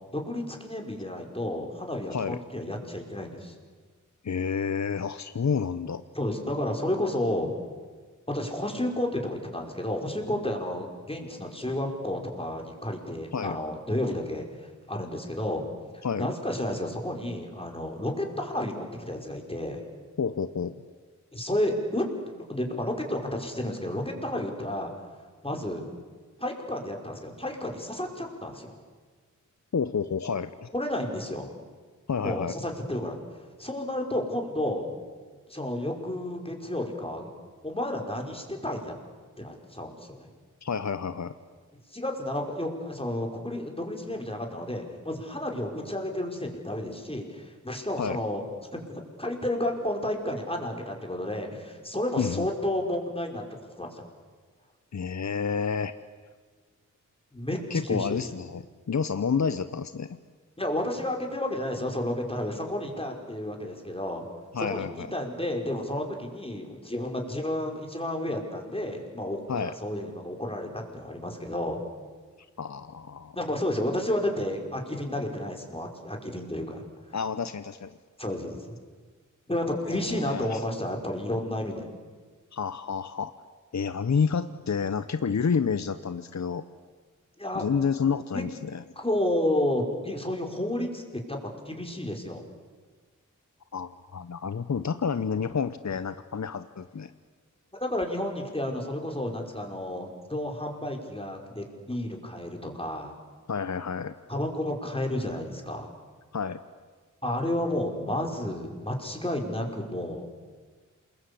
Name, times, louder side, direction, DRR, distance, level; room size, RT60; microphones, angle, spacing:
voice 1, 0.1-3.5 6.2-7.5 8.3-15.6 16.2-19.8 21.3-22.1 22.3-24.9 25.4-25.8 26.4-28.7 30.7-31.5 32.2-33.2 33.6-34.9 35.5-37.3 37.6-38.9 39.4-40.3 41.9-48.4 48.7-53.4 53.8-54.0 57.3-58.2 60.6-64.2 64.6-64.9 65.1-71.8 73.3-76.8 78.2-78.8 79.5-81.9 87.4-87.7 88.3-88.4 89.0-91.4 91.7-92.4 97.7-103.1 104.3-105.9 107.2-110.2, left 1 dB, 20° left, 2 dB, 5.4 m, -31 dB
voice 2, 4.2-6.0 13.3-13.6 16.0-16.3 20.2-20.8 29.7-30.7 32.1-32.5 40.6-41.3 48.0-48.2 52.2-52.5 54.9-55.9 57.7-60.1 64.5-65.1 69.5-69.7 72.6-73.4 77.1-78.0 79.9-80.6 82.5-83.3 83.7-86.6 87.5-88.8 93.7-97.1 103.5-104.1 106.3-106.6, left 6 dB, 60° left, 12 dB, 0.9 m, -29 dB
28.0 x 21.5 x 8.5 m, 1.5 s
cardioid pair, 40°, 31 cm